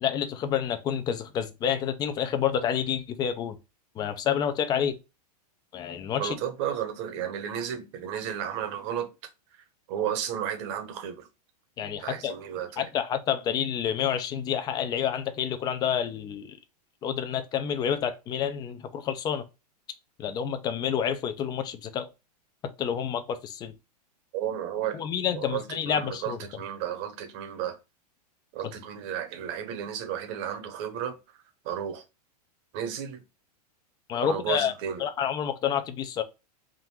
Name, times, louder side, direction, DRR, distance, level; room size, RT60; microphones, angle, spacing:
voice 1, 0.0-3.6 4.0-5.0 5.7-6.3 11.8-12.3 12.8-16.6 17.0-19.4 20.2-22.1 22.8-23.7 24.9-26.4 34.1-34.7 35.0-36.2, left 8 dB, 20° left, 0.5 m, -28 dB
voice 2, 6.2-9.1 9.9-11.3 12.0-12.9 24.3-25.0 25.3-27.8 28.5-31.1 31.6-32.0 32.7-33.2 34.1-35.0, right 9 dB, 45° right, 1.1 m, -33 dB
3.7 x 2.5 x 4.4 m
supercardioid pair, 150°, 21 cm